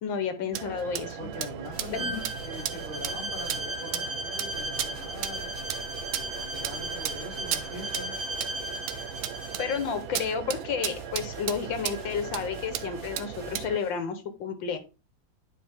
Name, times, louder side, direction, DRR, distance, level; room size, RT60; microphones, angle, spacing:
voice 1, 0.0-1.3 1.9-2.2 9.6-14.8, left 6 dB, 75° left, 1.8 m, -31 dB
sound 1, 0.5-13.8, right 11 dB, 85° right, 1.4 m, -36 dB
voice 2, 1.2-5.5 6.1-8.2, left 1 dB, 25° left, 2.3 m, -42 dB
sound 2, 1.7-4.0 4.5-14.0, left 3 dB, 45° left, 2.7 m, -48 dB
Bowed string instrument, 1.9-9.9, right 1 dB, 30° right, 1.4 m, -36 dB
10.0 x 4.8 x 3.5 m
omnidirectional pair, 2.1 m